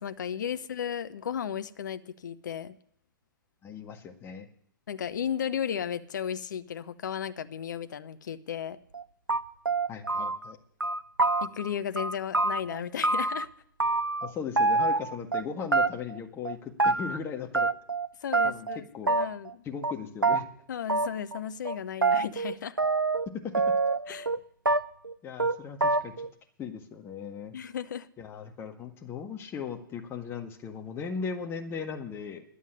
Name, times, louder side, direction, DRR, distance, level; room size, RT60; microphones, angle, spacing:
voice 1, 0.0-2.7 4.9-8.8 11.4-13.5 18.2-19.6 20.7-22.8 24.1-24.3 27.5-28.1, left 8 dB, 60° left, 0.8 m, -34 dB
voice 2, 3.6-4.5 9.9-10.6 14.2-17.7 18.4-19.1 19.6-20.5 23.3-23.7 24.1-24.2 25.2-26.3 26.6-27.5 28.2-32.4, left 6 dB, 20° left, 1.7 m, -38 dB
sound 1, 8.9-9.0 9.3-10.5 10.8-11.7 12.0-13.4 13.8-14.3 14.6-15.4 15.7-16.2 16.4-17.2 17.5-18.1 18.3-18.8 19.1-19.5 19.8-19.9 20.2-20.4 20.9-21.4 21.6-23.3 23.5-24.4 24.7-25.1 25.4-25.5 25.8-26.3, right 3 dB, 90° right, 0.5 m, -26 dB
10.0 x 8.2 x 9.9 m
figure-of-eight pair, 110°, 11 cm